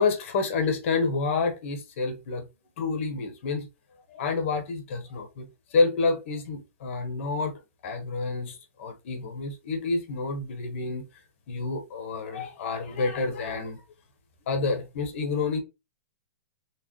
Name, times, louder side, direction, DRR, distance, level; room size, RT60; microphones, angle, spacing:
voice 1, 0.0-2.5 2.8-3.7 4.1-5.4 5.7-11.0 11.5-13.8 14.5-15.6, left 4 dB, 55° left, 1.2 m, -28 dB
4.3 x 2.4 x 3.1 m
hypercardioid pair, 150°, 8 cm